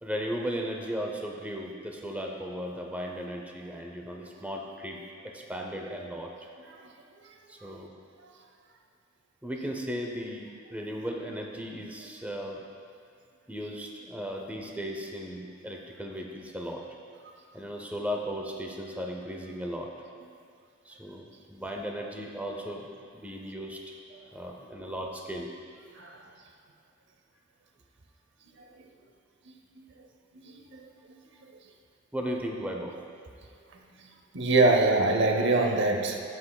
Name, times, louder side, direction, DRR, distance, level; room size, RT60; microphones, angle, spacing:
voice 1, 0.0-6.3 7.5-7.9 9.4-12.7 13.5-16.8 17.5-19.9 20.9-23.8 24.3-25.5 32.1-32.9, equal, 10° right, 0 dB, 0.6 m, -36 dB
voice 2, 30.3-31.2 33.7-36.2, right 2 dB, 65° right, 3 dB, 0.7 m, -25 dB
12.5 x 6.1 x 2.3 m, 2.2 s
head